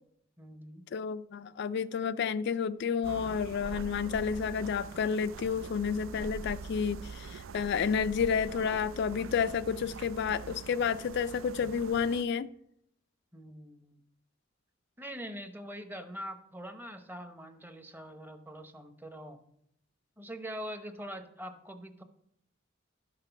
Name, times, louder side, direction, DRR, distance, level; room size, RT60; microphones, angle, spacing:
voice 1, 0.4-0.8 13.3-14.0 15.0-19.4 20.2-22.0, equal, 10° right, 0.8 m, -43 dB
voice 2, 0.9-12.5, left 6 dB, 60° left, 0.3 m, -30 dB
sound 1, 3.0-12.2, right 5 dB, 85° right, 0.4 m, -44 dB
12.0 x 5.9 x 5.7 m
head